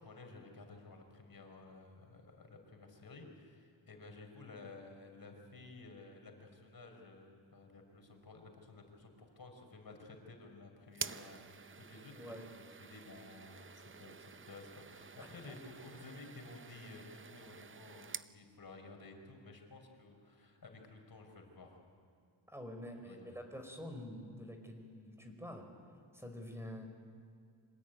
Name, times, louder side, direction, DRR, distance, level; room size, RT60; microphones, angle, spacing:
voice 1, 0.0-21.8 23.0-23.4, left 3 dB, 45° left, 4 dB, 5.0 m, -54 dB
sound 1, 10.9-18.3, right 6 dB, 25° right, 0.6 m, -49 dB
voice 2, 12.1-12.5 15.5-15.6 22.5-25.7 26.1-26.9, equal, 5° right, 5 dB, 5.1 m, -47 dB
25.5 x 19.0 x 9.4 m, 2.4 s
cardioid pair, 80°, 48 cm